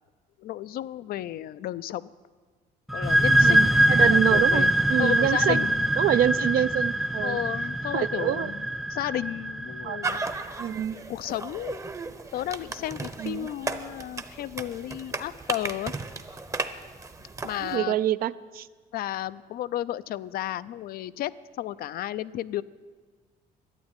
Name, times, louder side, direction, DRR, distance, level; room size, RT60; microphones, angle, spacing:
voice 1, 0.4-2.1 2.9-3.7 4.0-4.7 5.0-5.9 7.2-10.2 10.7-11.8 12.3-16.0 17.4-18.0 18.9-22.6, left 13 dB, 65° left, 16 dB, 0.4 m, -33 dB
sound 1, 2.9-10.3, right 1 dB, ahead, 0.3 m, -23 dB
voice 2, 3.4-4.6 4.9-5.6 6.0-7.4 7.9-8.5 9.8-10.0 10.6-11.0 13.2-13.5 17.6-18.7, right 11 dB, 60° right, 15 dB, 0.5 m, -26 dB
sound 2, 10.0-17.8, right 3 dB, 20° right, 0.8 m, -35 dB
11.5 x 9.1 x 9.0 m, 1.5 s
cardioid pair, 110°, 17 cm